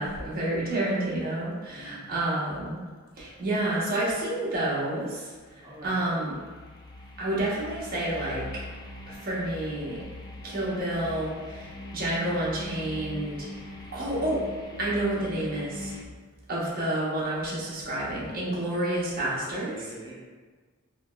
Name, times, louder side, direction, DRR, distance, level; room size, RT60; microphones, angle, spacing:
voice 1, 0.0-2.8 3.2-6.3 7.2-8.6 9.1-10.0 10.4-13.5 13.9-14.4 14.8-15.9 16.5-19.9, right 1 dB, 45° right, -7 dB, 1.0 m, -29 dB
voice 2, 1.7-2.2 5.6-6.0 19.7-20.1, right 1 dB, 20° right, -5 dB, 0.6 m, -45 dB
sound 1, 5.4-16.0, left 1 dB, 20° left, 0.3 m, -42 dB
3.5 x 2.9 x 2.2 m, 1.4 s
head